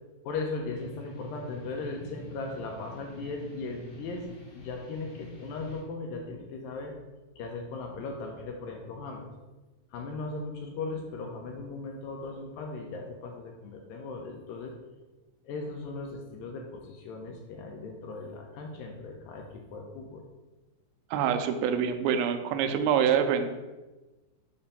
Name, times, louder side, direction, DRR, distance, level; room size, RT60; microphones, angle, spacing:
voice 1, 0.2-4.2 4.5-6.9 7.4-9.3 9.9-14.7 15.4-20.2, left 3 dB, 85° left, 1 dB, 2.0 m, -38 dB
sound 1, 0.7-5.8, equal, 55° left, 1.5 m, -46 dB
voice 2, 21.1-23.5, right 8 dB, 80° right, 7 dB, 2.3 m, -25 dB
7.0 x 2.6 x 5.4 m, 1.1 s
omnidirectional pair, 4.7 m